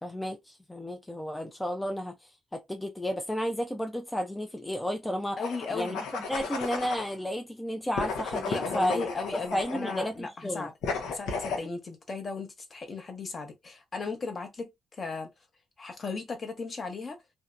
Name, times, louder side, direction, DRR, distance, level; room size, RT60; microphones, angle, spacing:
voice 1, 0.0-5.4 5.7-6.0 6.3-9.1 9.5-10.7, equal, 10° left, 0.4 m, -32 dB
sound 1, 5.4-7.1 8.0-10.1 10.8-11.7, left 4 dB, 85° left, 0.7 m, -34 dB
voice 2, 5.4-6.0 8.5-10.7 11.1-15.3 15.8-17.2, left 4 dB, 40° left, 0.7 m, -36 dB
2.7 x 2.0 x 2.4 m
cardioid pair, 90°, 0 cm